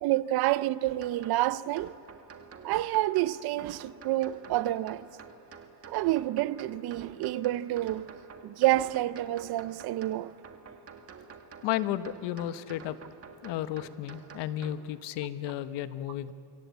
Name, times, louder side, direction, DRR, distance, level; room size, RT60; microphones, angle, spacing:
voice 1, 0.0-1.9 2.6-5.1 5.9-8.1 8.4-10.3, right 15 dB, 60° right, 0.7 m, -28 dB
sound 1, 1.0-14.7, right 6 dB, 35° right, 1.7 m, -49 dB
voice 2, 11.6-13.0 13.4-16.3, left 12 dB, 80° left, 1.1 m, -33 dB
25.5 x 23.5 x 8.3 m
cardioid pair, 150°, 42 cm